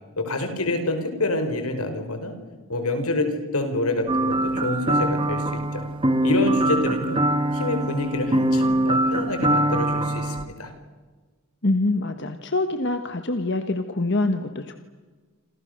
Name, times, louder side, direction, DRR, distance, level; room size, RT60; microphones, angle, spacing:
voice 1, 0.2-2.3 2.7-5.4 5.7-5.8 6.2-7.2 7.5-10.7, left 2 dB, 85° left, 7 dB, 5.0 m, -27 dB
sound 1, 4.1-10.4, right 1 dB, 20° right, 1.6 m, -23 dB
voice 2, 11.6-14.8, left 2 dB, 50° left, 7 dB, 1.4 m, -25 dB
28.0 x 27.5 x 6.7 m, 1.4 s
head